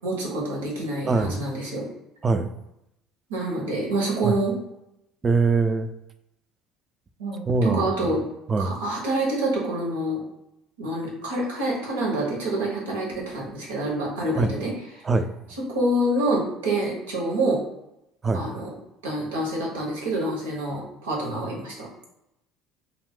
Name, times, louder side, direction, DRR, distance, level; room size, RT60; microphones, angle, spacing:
voice 1, 0.0-1.9 3.3-4.6 7.2-8.2 8.6-10.2 10.8-15.0 15.7-17.6 18.3-18.7 19.0-21.9, right 1 dB, 90° right, -3 dB, 0.9 m, -27 dB
voice 2, 1.1-1.5 2.2-2.5 4.2-4.4 5.2-5.9 7.5-7.9 8.5-8.7 14.4-14.5 15.0-15.3 18.2-18.4, right 3 dB, 30° right, 9 dB, 0.3 m, -22 dB
2.4 x 2.1 x 3.6 m, 0.86 s
hypercardioid pair, 70°, 0 cm